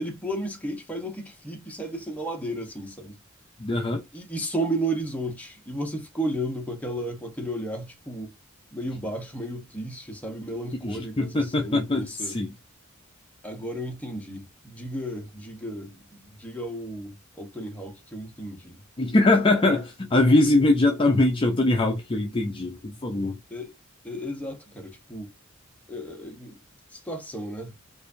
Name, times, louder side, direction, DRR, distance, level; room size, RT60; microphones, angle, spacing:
voice 1, 0.0-3.2 4.1-8.3 8.7-12.4 13.4-18.8 23.5-23.7 24.0-25.3 25.9-26.6 26.9-27.8, right 1 dB, 5° left, 0.9 m, -33 dB
voice 2, 3.6-4.0 10.7-12.5 19.0-23.4, left 2 dB, 25° left, 0.5 m, -22 dB
4.6 x 2.5 x 2.5 m
head